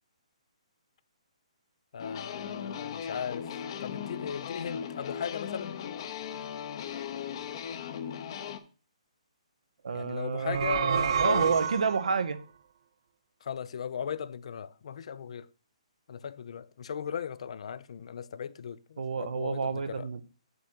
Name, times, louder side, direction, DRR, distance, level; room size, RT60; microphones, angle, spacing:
voice 1, 1.9-5.8 9.9-11.6 13.4-15.5 16.1-20.1, left 7 dB, 60° left, 0.6 m, -37 dB
sound 1, 2.0-8.6, left 8 dB, 45° left, 0.9 m, -38 dB
voice 2, 9.8-12.4 19.0-20.2, right 5 dB, 75° right, 0.9 m, -30 dB
sound 2, 10.3-12.2, right 7 dB, 45° right, 0.4 m, -29 dB
6.8 x 6.4 x 4.4 m
hypercardioid pair, 155°, 4 cm